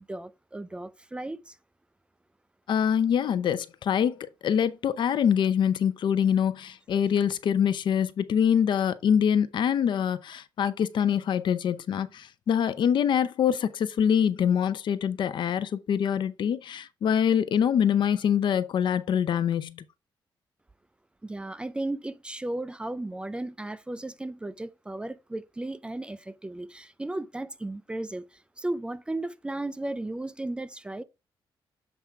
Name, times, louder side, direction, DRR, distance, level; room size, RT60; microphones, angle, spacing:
voice 1, 0.0-1.6 21.2-31.0, right 2 dB, 10° right, 0.4 m, -35 dB
voice 2, 2.7-19.8, left 8 dB, 70° left, 0.6 m, -25 dB
7.2 x 3.5 x 4.4 m
cardioid pair, 125°, 9 cm